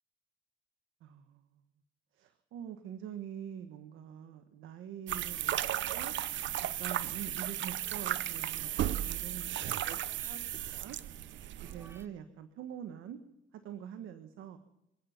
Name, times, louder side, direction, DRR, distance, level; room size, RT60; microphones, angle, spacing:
voice 1, 1.0-1.6 2.1-6.3 6.8-11.0 11.6-13.2 13.5-14.6, right 9 dB, 85° right, 9 dB, 1.3 m, -45 dB
sound 1, 5.1-12.0, right 12 dB, 70° right, 0.7 m, -35 dB
sound 2, 5.2-6.0 7.5-8.2 9.8-10.8 11.6-12.1, right 2 dB, 15° right, 2.9 m, -62 dB
26.5 x 9.4 x 5.8 m, 0.87 s
cardioid pair, 90°, 20 cm